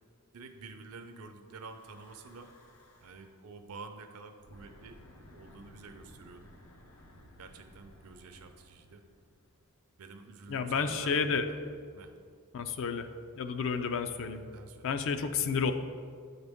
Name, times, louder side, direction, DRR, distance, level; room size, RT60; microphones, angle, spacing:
voice 1, 0.3-2.5 3.0-5.0 5.3-6.5 7.4-9.0 10.0-11.6 11.9-12.1 14.5-14.9, right 4 dB, 80° right, 7 dB, 0.5 m, -49 dB
Breathing / Wind, 1.4-3.4 4.3-9.7, left 1 dB, 85° left, 0.8 m, -57 dB
voice 2, 10.5-11.5 12.5-13.1 13.4-14.4 14.8-15.7, left 5 dB, 60° left, 9 dB, 0.4 m, -31 dB
8.8 x 4.0 x 3.5 m, 2.2 s
head